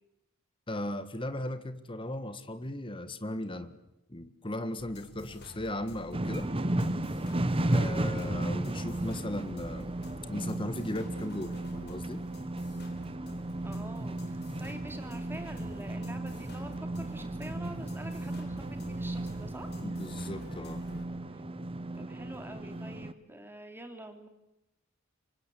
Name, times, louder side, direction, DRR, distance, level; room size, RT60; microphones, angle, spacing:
voice 1, 0.7-3.7 4.1-6.5 7.7-9.9 10.3-12.2 19.8-20.8, left 1 dB, 25° left, 11 dB, 1.6 m, -37 dB
sound 1, 4.8-21.0, left 1 dB, 50° left, 3.9 m, -50 dB
sound 2, 6.1-23.1, right 1 dB, 25° right, 1.1 m, -34 dB
voice 2, 13.6-19.7 21.3-21.4 21.9-24.3, right 1 dB, 10° right, 6 dB, 2.9 m, -46 dB
26.0 x 24.5 x 8.5 m, 0.91 s
head